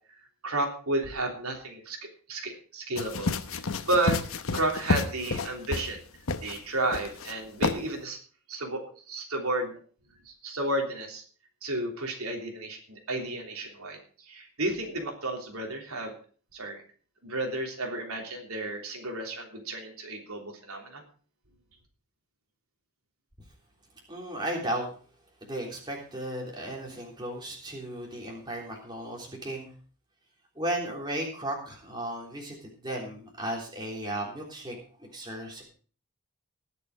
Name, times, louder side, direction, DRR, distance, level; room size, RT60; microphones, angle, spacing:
voice 1, 0.4-4.2 4.5-6.0 6.4-8.2 8.5-9.8 10.2-11.2 11.6-16.1 16.5-16.8 17.2-21.0, right 2 dB, 80° right, 1 dB, 3.3 m, -32 dB
sound 1, 3.0-6.0 6.3-6.6 6.9-7.3 7.6-7.8, left 3 dB, 70° left, 1.0 m, -30 dB
voice 2, 24.1-24.9 25.4-29.7 30.6-35.6, right 1 dB, 20° right, -1 dB, 3.5 m, -35 dB
20.0 x 6.9 x 4.8 m, 0.41 s
head